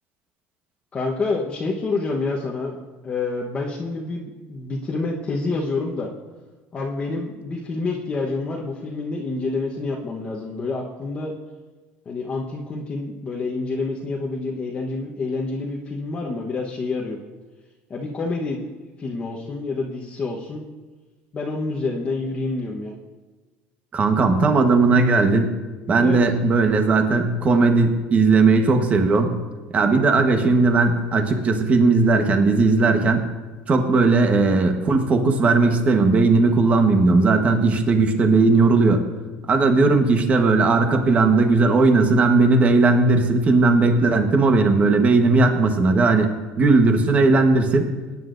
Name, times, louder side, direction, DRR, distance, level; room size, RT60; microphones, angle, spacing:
voice 1, 0.9-2.8 3.0-6.1 6.7-11.3 12.0-17.2 17.9-18.6 19.0-20.6 21.3-22.9 26.0-26.2, left 3 dB, 25° left, -3 dB, 1.1 m, -28 dB
voice 2, 23.9-25.5 25.9-29.4 29.7-33.3 33.7-39.0 39.5-46.3 46.6-47.9, right 3 dB, 30° right, 5 dB, 1.2 m, -17 dB
20.5 x 9.7 x 2.6 m, 1.3 s
cardioid pair, 140°, 5 cm